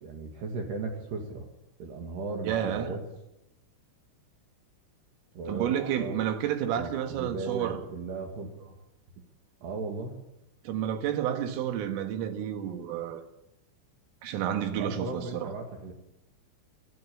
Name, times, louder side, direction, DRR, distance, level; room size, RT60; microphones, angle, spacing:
voice 1, 0.0-1.5 1.8-3.0 5.4-6.2 6.7-8.8 9.6-10.2 14.8-15.9, right 3 dB, 60° right, 3.8 m, -37 dB
voice 2, 2.4-3.0 5.5-7.8 10.7-13.2 14.2-15.5, right 10 dB, 80° right, 4.2 m, -30 dB
21.0 x 14.5 x 8.5 m
omnidirectional pair, 5.8 m